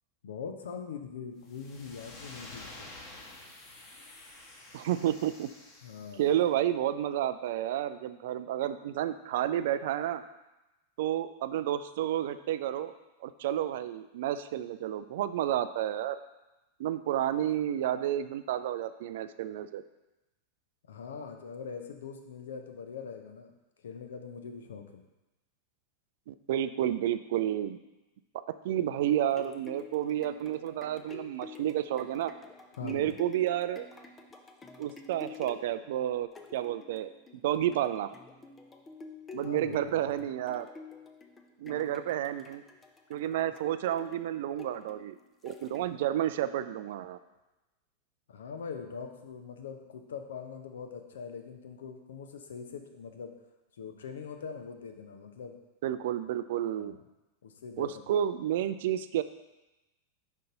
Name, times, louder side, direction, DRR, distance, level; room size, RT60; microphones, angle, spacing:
voice 1, 0.2-2.9 5.8-6.3 20.9-23.5 23.8-25.0 32.8-33.1 39.4-40.2 48.3-53.3 53.8-55.5 56.8-57.0 57.4-57.9, left 6 dB, 65° left, 5 dB, 0.7 m, -42 dB
sound 1, 1.4-6.4, left 2 dB, 35° left, 1.1 m, -49 dB
voice 2, 4.7-5.5 6.1-10.2 11.0-12.9 13.2-16.2 16.8-19.8 26.3-27.8 28.6-32.3 32.8-33.9 34.8-37.1 37.4-38.1 39.3-40.7 41.6-42.6 43.1-45.1 45.4-47.2 55.8-56.9 57.8-59.2, right 11 dB, 55° right, 12 dB, 0.3 m, -31 dB
sound 2, 29.1-46.2 46.7-46.8, left 4 dB, 15° left, 0.6 m, -50 dB
5.4 x 5.2 x 3.8 m, 1.0 s
figure-of-eight pair, 90°, 0 cm